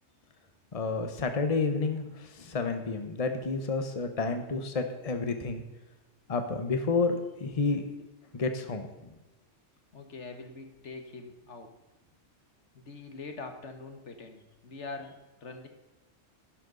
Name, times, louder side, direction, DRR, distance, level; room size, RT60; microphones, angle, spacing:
voice 1, 0.7-5.6 6.3-7.8 8.3-9.1, left 4 dB, 30° left, 7 dB, 1.1 m, -30 dB
voice 2, 9.9-11.7 12.7-15.7, left 3 dB, 75° left, 6 dB, 1.8 m, -43 dB
12.0 x 10.5 x 4.0 m, 1.1 s
omnidirectional pair, 1.2 m